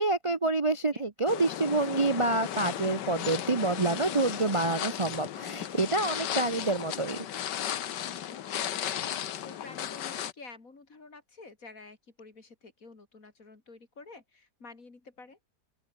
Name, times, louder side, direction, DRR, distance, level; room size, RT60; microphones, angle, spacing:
voice 1, 0.0-7.3, right 2 dB, 25° right, 0.9 m, -27 dB
sound 1, 1.3-10.3, left 10 dB, 80° left, 1.7 m, -35 dB
voice 2, 8.5-9.2 9.4-15.4, left 3 dB, 50° left, 3.6 m, -50 dB
open air
omnidirectional pair, 1.8 m